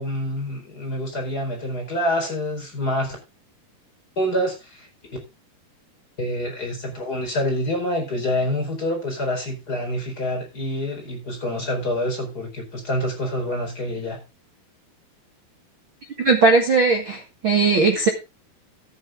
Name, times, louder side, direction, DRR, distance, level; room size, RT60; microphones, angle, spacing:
voice 1, 0.0-3.2 4.2-4.9 6.2-14.2, left 1 dB, 20° left, 2 dB, 4.8 m, -26 dB
voice 2, 16.2-18.1, right 3 dB, 60° right, 3 dB, 1.3 m, -18 dB
13.5 x 9.4 x 3.7 m, 0.27 s
omnidirectional pair, 4.8 m